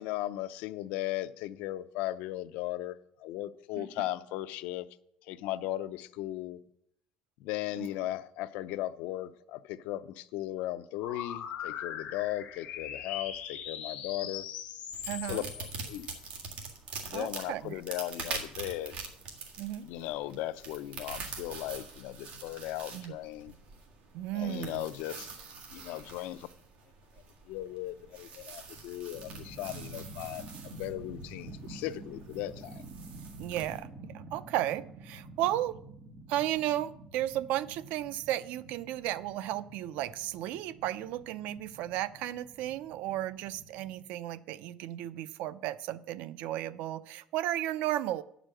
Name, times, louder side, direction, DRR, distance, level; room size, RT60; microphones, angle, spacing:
voice 1, 0.0-4.9 5.3-6.6 7.4-14.5 15.2-16.1 17.0-19.0 19.8-23.5 24.3-25.3 25.7-26.5 27.5-32.8, left 14 dB, 80° left, 0.5 m, -37 dB
sound 1, 11.0-16.5, left 9 dB, 55° left, 1.1 m, -41 dB
sound 2, 14.9-33.8, right 4 dB, 55° right, 1.8 m, -45 dB
voice 2, 15.1-15.5 17.1-17.8 19.6-19.9 22.9-23.2 24.1-24.8 33.4-33.9 34.1-35.8 36.3-48.2, right 13 dB, 70° right, 0.4 m, -34 dB
sound 3, 29.1-44.0, right 3 dB, 30° right, 1.8 m, -48 dB
9.8 x 5.1 x 7.6 m
cardioid pair, 170°, 3 cm